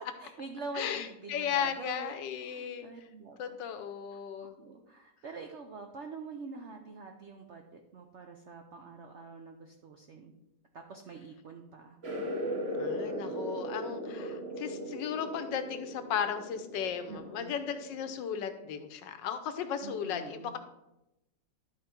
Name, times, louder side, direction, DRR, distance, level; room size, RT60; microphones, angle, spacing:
voice 1, 0.2-2.1 2.4-3.6 4.1-4.2 4.6-10.3 10.7-12.0 17.1-17.5 19.8-20.6, right 4 dB, 70° right, 4 dB, 0.6 m, -45 dB
voice 2, 0.8-2.9 3.4-4.5 12.8-20.6, left 8 dB, 75° left, 9 dB, 1.4 m, -35 dB
sound 1, 12.0-18.2, equal, 45° right, 1.3 m, -38 dB
11.5 x 4.1 x 4.4 m, 0.92 s
omnidirectional pair, 2.0 m